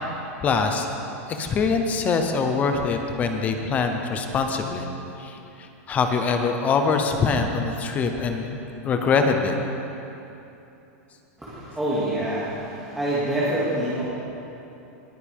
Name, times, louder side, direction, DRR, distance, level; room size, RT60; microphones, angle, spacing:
voice 1, 0.4-0.9 1.3-4.9 5.2-8.6 8.8-9.5, left 5 dB, 20° left, 5 dB, 0.7 m, -24 dB
voice 2, 11.4-14.0, right 1 dB, 5° right, -12 dB, 2.2 m, -26 dB
20.0 x 10.0 x 3.6 m, 2.9 s
supercardioid pair, 165°, 8 cm